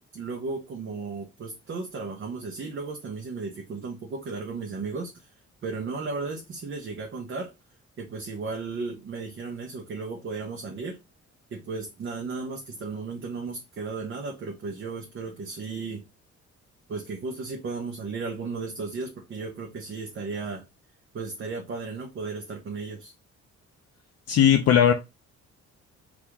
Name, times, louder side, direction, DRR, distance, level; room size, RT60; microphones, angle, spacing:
voice 1, 0.0-5.3 5.6-7.5 8.0-11.0 11.5-16.0 16.9-20.6 21.1-23.1, right 4 dB, 40° right, 0.7 m, -35 dB
voice 2, 24.3-24.9, left 9 dB, 55° left, 0.5 m, -18 dB
2.8 x 2.5 x 3.4 m
cardioid pair, 90°, 30 cm